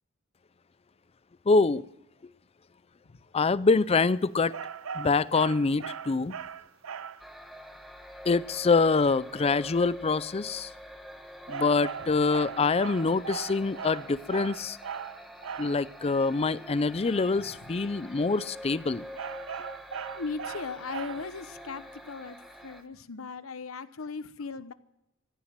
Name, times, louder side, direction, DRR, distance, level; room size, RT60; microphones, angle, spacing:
voice 1, 1.5-1.8 3.3-4.5 4.9-6.3 8.2-10.7 11.5-14.8 15.6-19.0, left 4 dB, 30° left, 0.5 m, -25 dB
sound 1, 4.5-7.3 11.5-15.8 19.1-21.4, right 7 dB, 75° right, 0.5 m, -39 dB
sound 2, 7.2-22.8, equal, ahead, 1.1 m, -45 dB
voice 2, 17.4-17.7 20.1-22.4 22.6-24.7, left 4 dB, 80° left, 0.9 m, -38 dB
15.0 x 10.5 x 7.4 m
head